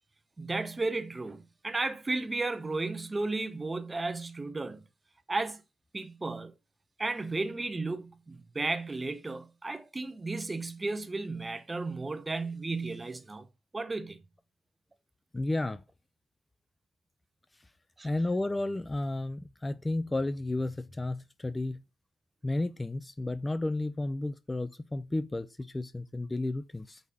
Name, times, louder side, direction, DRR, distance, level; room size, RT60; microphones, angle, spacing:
voice 1, 0.4-4.8 5.3-5.6 5.9-6.5 7.0-13.5 13.7-14.2 18.0-18.1, right 3 dB, 20° right, 0.9 m, -34 dB
voice 2, 15.3-15.8 18.0-21.8 22.4-27.0, left 2 dB, 15° left, 0.5 m, -32 dB
6.4 x 5.0 x 5.5 m
cardioid pair, 90°, 0 cm